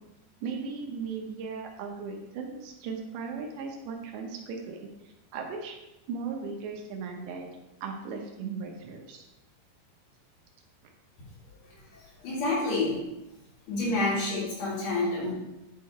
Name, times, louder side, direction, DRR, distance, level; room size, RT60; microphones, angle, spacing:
voice 1, 0.4-4.9 5.3-5.8 6.1-7.5 7.8-9.3, right 5 dB, 85° right, 2 dB, 3.2 m, -37 dB
voice 2, 11.9-13.0 13.7-15.3, left 2 dB, 75° left, -8 dB, 5.3 m, -28 dB
10.5 x 3.8 x 4.4 m, 0.95 s
omnidirectional pair, 5.0 m